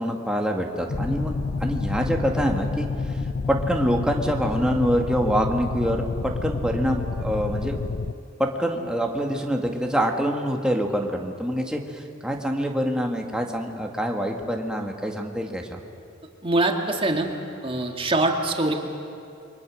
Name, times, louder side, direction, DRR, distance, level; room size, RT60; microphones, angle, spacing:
voice 1, 0.0-3.2 3.5-7.8 8.4-15.8, equal, 5° right, 1 dB, 2.0 m, -25 dB
sound 1, 0.9-8.1, left 4 dB, 55° left, 0.6 m, -29 dB
voice 2, 16.4-17.3 17.6-18.7, right 2 dB, 30° right, 3 dB, 2.1 m, -23 dB
29.5 x 24.0 x 6.4 m, 2.6 s
head